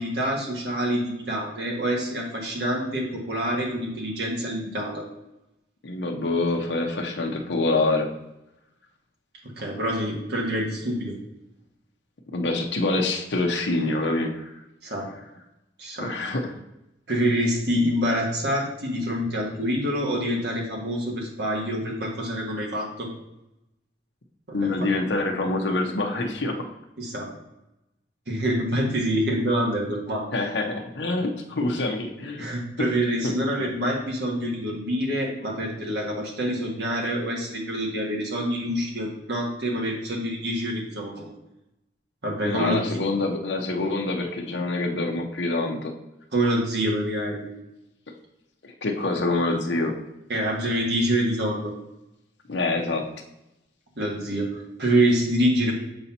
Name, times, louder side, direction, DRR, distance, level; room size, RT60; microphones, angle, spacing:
voice 1, 0.0-5.0 9.4-11.1 14.8-15.1 15.8-16.1 17.1-23.1 24.5-24.9 27.0-27.3 28.3-30.3 32.4-41.3 42.2-42.8 46.3-47.5 50.3-51.7 54.0-55.7, equal, 70° right, -2 dB, 1.7 m, -26 dB
voice 2, 5.8-8.1 12.3-14.5 16.0-16.6 24.5-26.6 30.3-32.4 33.2-33.3 42.4-45.9 48.6-49.9 52.5-53.0, left 2 dB, 80° left, 2 dB, 0.8 m, -26 dB
6.9 x 5.5 x 2.8 m, 0.91 s
head